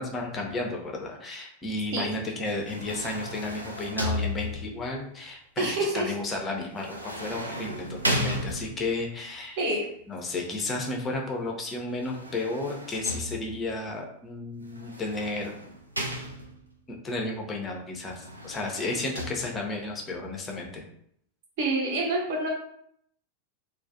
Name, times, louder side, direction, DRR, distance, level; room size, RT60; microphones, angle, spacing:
voice 1, 0.0-9.7 10.1-15.5 16.9-20.8, left 2 dB, 20° left, 1 dB, 0.5 m, -33 dB
sound 1, 2.4-4.9 6.8-9.0 11.9-13.7 14.7-16.7 18.1-19.3, left 1 dB, 85° right, 0.3 m, -34 dB
voice 2, 5.6-6.0 9.6-9.8 21.6-22.5, right 2 dB, 50° right, -2 dB, 0.7 m, -27 dB
2.3 x 2.1 x 2.5 m, 0.69 s
figure-of-eight pair, 90°, 0 cm